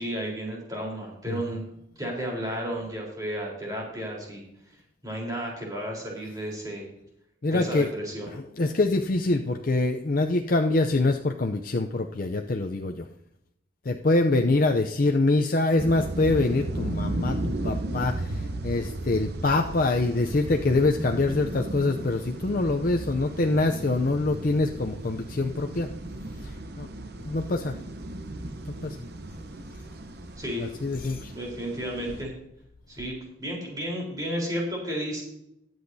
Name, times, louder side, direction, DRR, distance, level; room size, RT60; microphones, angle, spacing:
voice 1, 0.0-1.6 2.0-4.4 5.0-6.9 7.5-8.3 30.4-30.7 31.3-32.3 32.9-35.2, equal, 20° right, -2 dB, 3.9 m, -32 dB
voice 2, 7.4-7.9 8.6-13.1 13.8-25.9 26.4-26.9 27.2-27.8 28.7-29.0 30.6-31.3, left 2 dB, 45° left, 3 dB, 0.5 m, -25 dB
sound 1, 15.8-32.2, right 1 dB, 55° right, 0.8 m, -35 dB
21.5 x 7.9 x 2.7 m, 0.80 s
head